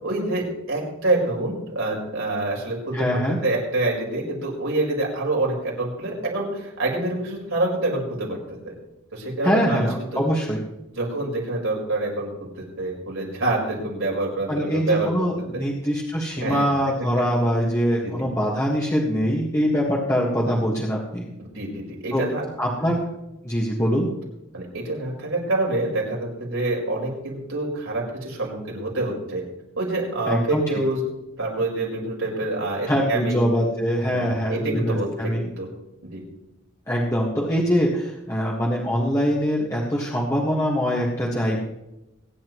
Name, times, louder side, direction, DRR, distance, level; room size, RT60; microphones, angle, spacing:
voice 1, 0.0-8.4 8.6-8.7 9.1-10.2 10.9-12.5 12.8-15.1 15.5-15.7 16.4-16.7 18.0-18.2 21.4-22.5 22.8-23.0 24.5-29.4 29.8-31.0 31.4-33.5 34.0-35.7 36.0-36.2, right 2 dB, 75° right, -3 dB, 4.9 m, -26 dB
voice 2, 2.9-3.4 9.4-10.6 14.5-21.3 22.1-22.2 22.6-23.0 23.4-24.1 30.3-30.6 32.9-35.5 36.9-41.6, equal, 15° left, -4 dB, 1.7 m, -23 dB
23.5 x 10.0 x 3.1 m, 0.93 s
head